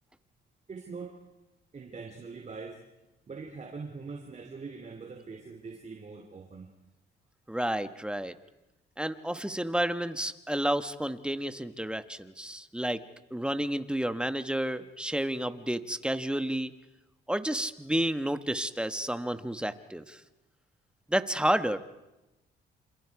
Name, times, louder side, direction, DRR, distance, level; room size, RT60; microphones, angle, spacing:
voice 1, 0.7-1.2 1.7-2.8 3.3-6.7, right 4 dB, 35° right, 3 dB, 3.0 m, -42 dB
voice 2, 7.5-8.3 9.0-13.0 13.3-16.7 17.3-20.2 21.1-21.8, right 1 dB, 5° right, 10 dB, 1.3 m, -30 dB
28.0 x 27.5 x 4.8 m, 0.98 s
cardioid pair, 90°, 20 cm